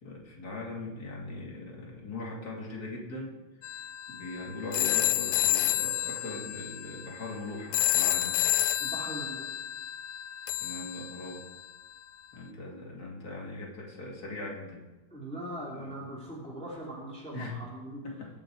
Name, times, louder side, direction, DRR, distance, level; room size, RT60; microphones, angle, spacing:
voice 1, 0.0-3.3 3.8-8.4 10.6-11.4 12.3-14.8 15.7-15.9 17.3-17.5 18.0-18.3, left 2 dB, 50° left, -1 dB, 2.9 m, -40 dB
sound 1, 3.6-11.7, left 13 dB, 85° left, 1.5 m, -30 dB
voice 2, 8.8-9.4 15.1-18.0, right 1 dB, 5° left, -5 dB, 2.9 m, -40 dB
22.0 x 8.0 x 4.7 m, 1.2 s
omnidirectional pair, 2.2 m